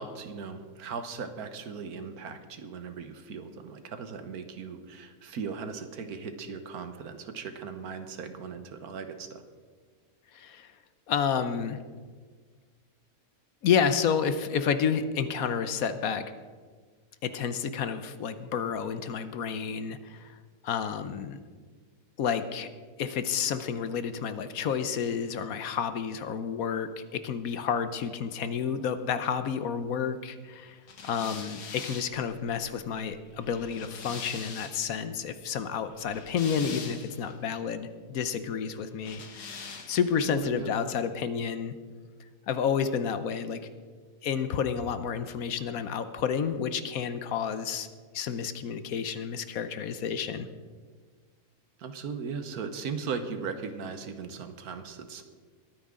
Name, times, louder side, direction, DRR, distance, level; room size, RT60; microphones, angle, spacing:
voice 1, 0.0-9.4 40.3-40.7 51.8-55.2, right 5 dB, 75° right, 9 dB, 1.4 m, -38 dB
voice 2, 10.3-10.7 11.1-11.8 13.6-16.2 17.2-20.4 20.6-21.4 22.2-22.7 23.0-30.8 31.0-41.7 42.5-43.6 44.2-47.9 48.1-50.5, left 7 dB, 70° left, 11 dB, 1.1 m, -30 dB
sound 1, 30.9-35.0 35.9-37.3 39.0-40.2, left 5 dB, 85° left, 1.8 m, -43 dB
22.0 x 9.4 x 3.7 m, 1.5 s
omnidirectional pair, 1.6 m